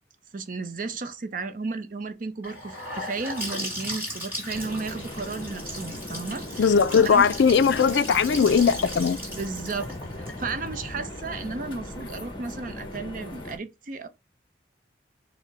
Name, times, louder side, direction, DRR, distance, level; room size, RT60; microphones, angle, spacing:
voice 1, 0.3-6.8 7.0-7.3 9.3-9.9 10.2-14.1, right 3 dB, 45° right, 0.6 m, -34 dB
Gurgling / Sink (filling or washing) / Bathtub (filling or washing), 2.4-12.3, equal, 10° right, 1.7 m, -37 dB
sound 1, 4.5-13.6, left 1 dB, 25° left, 0.8 m, -39 dB
voice 2, 6.6-9.2, left 6 dB, 65° left, 0.3 m, -19 dB
4.5 x 2.1 x 4.6 m
head